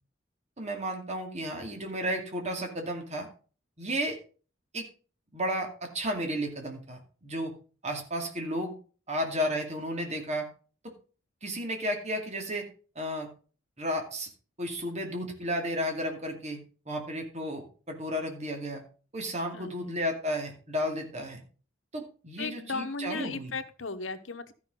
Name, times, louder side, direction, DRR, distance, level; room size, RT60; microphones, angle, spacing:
voice 1, 0.6-3.3 3.8-4.2 4.7-4.9 5.3-7.5 7.8-8.7 9.1-10.5 10.8-10.9 11.4-12.7 13.0-13.3 13.8-14.3 14.6-16.6 16.9-18.8 19.1-21.4 21.9-23.5, equal, 35° right, 3 dB, 2.4 m, -33 dB
voice 2, 19.5-20.0 22.4-24.5, left 4 dB, 75° left, 9 dB, 1.2 m, -36 dB
13.0 x 6.0 x 5.3 m, 0.38 s
head